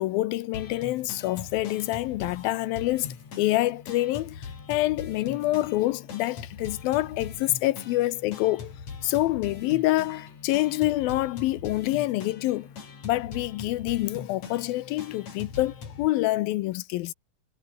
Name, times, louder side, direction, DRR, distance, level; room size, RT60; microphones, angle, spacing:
voice 1, 0.0-8.7 9.0-12.7 13.0-17.1, left 17 dB, 80° left, 2.5 m, -27 dB
sound 1, 0.5-16.1, left 5 dB, 45° left, 4.6 m, -42 dB
omnidirectional pair, 4.4 m